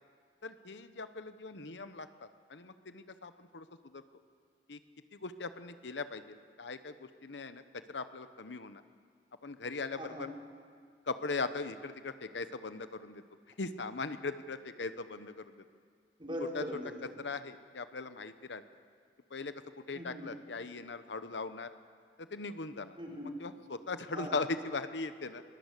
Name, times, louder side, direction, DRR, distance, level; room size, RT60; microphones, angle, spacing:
voice 1, 0.4-4.0 4.7-4.8 5.1-7.6 7.9-8.8 9.4-10.3 11.1-13.2 13.6-15.6 16.5-16.6 17.2-18.6 19.3-21.7 22.2-23.0 23.4-25.4, left 3 dB, 70° left, 11 dB, 0.9 m, -39 dB
voice 2, 10.0-10.3 16.2-17.1 19.9-20.2 23.0-23.3 24.1-24.3, equal, 30° right, -2 dB, 5.0 m, -40 dB
22.0 x 20.0 x 8.3 m, 2.1 s
head